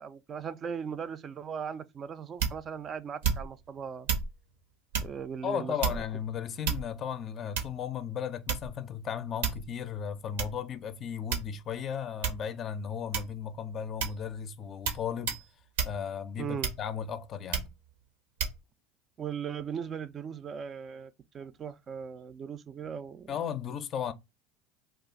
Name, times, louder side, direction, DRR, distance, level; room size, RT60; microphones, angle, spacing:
voice 1, 0.0-4.1 5.0-5.7 16.4-16.7 19.2-23.3, right 7 dB, 35° right, 0.3 m, -38 dB
sound 1, 2.4-2.8 3.2-3.6 4.1-4.3 4.9-5.2 5.8-6.2 6.6-7.1 7.6-7.9 8.5-8.8 9.4-9.7 10.4-10.5 11.3-11.7 12.2-12.5 13.1-13.5 14.0-14.2 14.9-15.0 15.3-15.5 15.8-16.0 16.6-17.0 17.5-17.8 18.4-18.6, right 6 dB, 80° right, 0.8 m, -31 dB
voice 2, 5.4-15.4 15.8-17.7 23.3-24.1, left 8 dB, 45° left, 0.4 m, -35 dB
2.4 x 2.3 x 3.9 m
hypercardioid pair, 90°, 0 cm